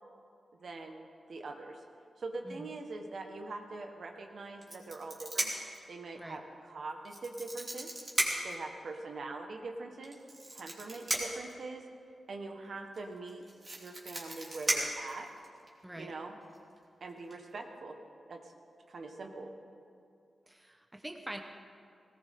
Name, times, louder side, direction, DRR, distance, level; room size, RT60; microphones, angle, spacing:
voice 1, 0.5-1.8 2.2-5.5 5.9-7.9 8.4-10.2 10.5-11.9 12.3-13.4 13.8-15.3 16.0-16.3 17.0-18.0 18.3-18.5 18.9-19.5, right 3 dB, 60° right, 4 dB, 1.5 m, -43 dB
sound 1, 4.6-5.8 7.0-8.6 10.0-11.5 12.9-13.0 13.3-15.7 16.5-16.8 17.1-17.3, right 2 dB, 35° right, 3.0 m, -35 dB
voice 2, 20.5-21.4, right 1 dB, 10° right, 4 dB, 1.1 m, -44 dB
18.5 x 18.5 x 3.8 m, 2.5 s
wide cardioid pair, 120°, 0 cm